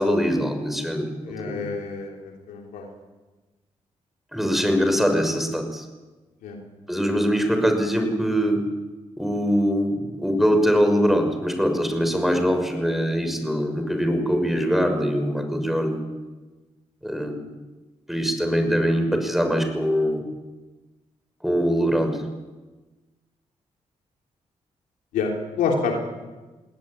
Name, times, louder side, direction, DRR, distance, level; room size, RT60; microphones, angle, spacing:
voice 1, 0.0-1.6 4.3-5.8 6.9-8.6 9.2-16.0 17.0-17.5 18.1-20.2 21.4-22.2, equal, ahead, 6 dB, 6.1 m, -22 dB
voice 2, 1.2-2.9 6.4-6.6 25.1-25.3 25.6-26.0, left 5 dB, 90° left, 1 dB, 3.4 m, -27 dB
20.5 x 17.0 x 9.7 m, 1.2 s
supercardioid pair, 50°, 14 cm